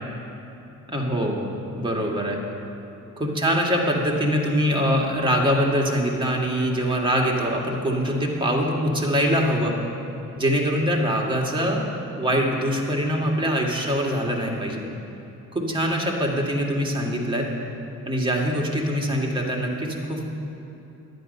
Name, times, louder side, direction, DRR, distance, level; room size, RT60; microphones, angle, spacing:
voice 1, 0.9-2.4 3.2-9.8 10.4-14.8 15.5-17.5 18.1-20.2, equal, 15° right, -1 dB, 1.9 m, -23 dB
11.5 x 9.5 x 5.4 m, 2.9 s
cardioid pair, 90°, 30 cm